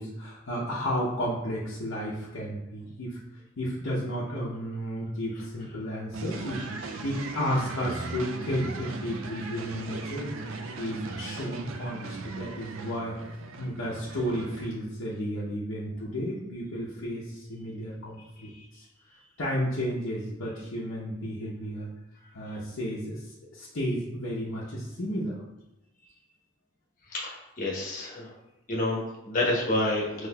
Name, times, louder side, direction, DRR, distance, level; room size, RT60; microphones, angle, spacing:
voice 1, 0.0-3.2 3.6-6.7 7.0-10.3 10.8-13.2 13.6-18.8 19.4-21.9 22.3-25.4, equal, 80° left, -8 dB, 0.8 m, -32 dB
sound 1, 6.1-14.7, right 3 dB, 85° right, 0.4 m, -38 dB
voice 2, 27.1-28.3 28.7-30.3, left 1 dB, 40° left, -4 dB, 1.1 m, -29 dB
5.7 x 3.0 x 2.3 m, 0.95 s
head